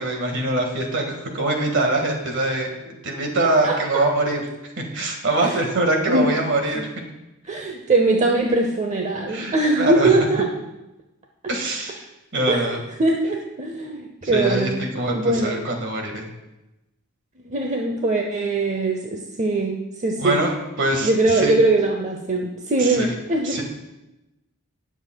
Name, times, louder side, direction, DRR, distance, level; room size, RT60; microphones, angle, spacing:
voice 1, 0.0-4.4 4.8-6.9 9.3-10.1 11.5-12.0 12.3-12.8 14.2-16.3 20.2-20.5 20.8-21.5 22.8-23.1 23.4-23.6, right 2 dB, 55° right, 2 dB, 1.8 m, -23 dB
voice 2, 3.6-4.0 5.4-5.6 6.1-6.3 6.7-6.8 7.4-10.5 12.5-14.7 15.1-15.6 17.4-20.4 21.0-23.6, right 2 dB, 35° right, 2 dB, 0.7 m, -21 dB
17.5 x 7.0 x 2.3 m, 0.96 s
head